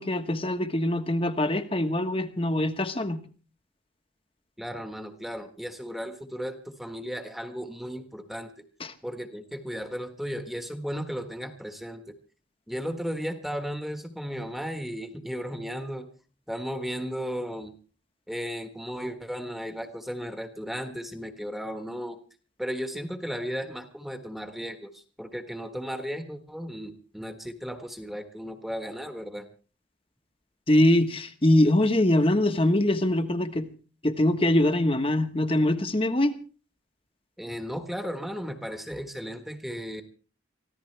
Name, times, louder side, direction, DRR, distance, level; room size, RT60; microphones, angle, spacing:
voice 1, 0.0-3.2 8.8-8.9 30.7-33.7 34.0-36.3, left 1 dB, 30° left, 9 dB, 1.3 m, -23 dB
voice 2, 4.6-8.5 9.0-12.1 12.7-16.1 16.5-17.7 18.3-22.2 22.6-29.5 37.4-40.0, equal, ahead, 6 dB, 1.4 m, -35 dB
24.5 x 15.5 x 3.4 m, 0.38 s
head